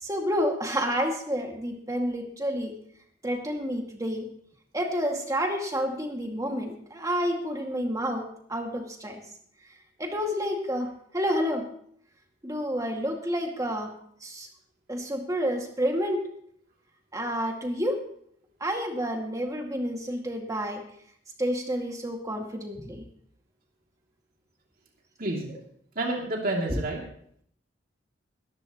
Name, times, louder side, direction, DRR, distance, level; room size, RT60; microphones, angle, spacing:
voice 1, 0.0-2.7 3.2-4.3 4.7-9.2 10.0-11.6 12.4-13.9 14.2-14.5 14.9-16.2 17.1-18.0 18.6-20.8 21.4-23.0, equal, 20° right, 2 dB, 2.1 m, -29 dB
voice 2, 25.2-25.6 25.9-27.0, right 2 dB, 50° right, -1 dB, 2.7 m, -29 dB
19.5 x 14.5 x 3.0 m, 0.65 s
head